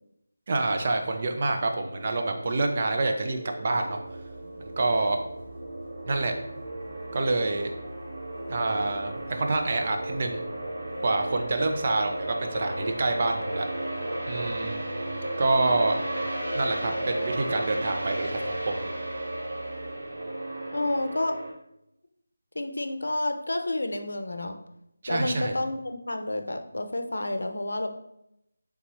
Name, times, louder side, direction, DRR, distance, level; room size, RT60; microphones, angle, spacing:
voice 1, 0.5-4.0 4.8-5.2 6.1-6.3 7.1-7.7 8.5-10.4 11.0-13.7 14.3-14.8 15.4-16.0 16.5-18.9 25.0-25.6, right 2 dB, 30° right, 4 dB, 0.4 m, -27 dB
sound 1, 1.8-21.5, right 1 dB, 55° right, 1.1 m, -34 dB
sound 2, 4.0-19.9, right 2 dB, ahead, 0.9 m, -47 dB
voice 2, 20.7-21.4 22.5-24.6 25.1-27.9, left 1 dB, 85° left, 6 dB, 0.6 m, -30 dB
3.5 x 2.9 x 4.2 m, 0.81 s
figure-of-eight pair, 175°, 0 cm